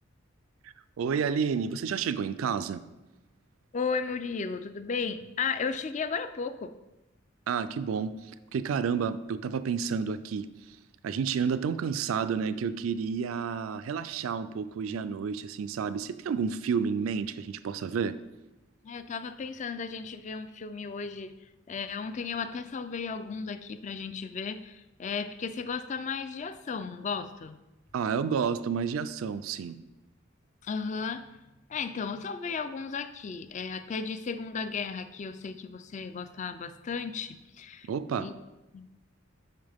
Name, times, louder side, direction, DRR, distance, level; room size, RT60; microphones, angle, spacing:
voice 1, 0.6-2.8 7.5-10.5 11.0-18.2 27.9-29.8 37.9-38.3, right 6 dB, 85° right, 0.4 m, -30 dB
voice 2, 3.7-6.7 18.8-21.3 21.7-27.6 30.6-31.2 31.7-37.9 38.2-38.3 38.7-38.9, left 5 dB, 35° left, 0.4 m, -34 dB
9.0 x 5.6 x 3.5 m
head